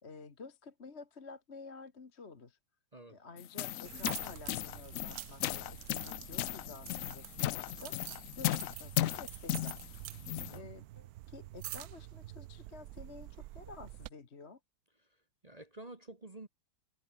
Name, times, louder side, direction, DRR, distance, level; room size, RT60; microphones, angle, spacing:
voice 1, 0.0-2.6 3.1-8.0 8.3-9.8 10.5-14.6, left 4 dB, 35° left, 1.8 m, -51 dB
sound 1, 3.4-10.6, left 13 dB, 80° left, 0.7 m, -36 dB
sound 2, 3.8-14.1, right 15 dB, 75° right, 0.8 m, -47 dB
voice 2, 10.3-10.7 15.4-16.5, right 2 dB, 25° right, 1.2 m, -50 dB
omnidirectional pair, 2.0 m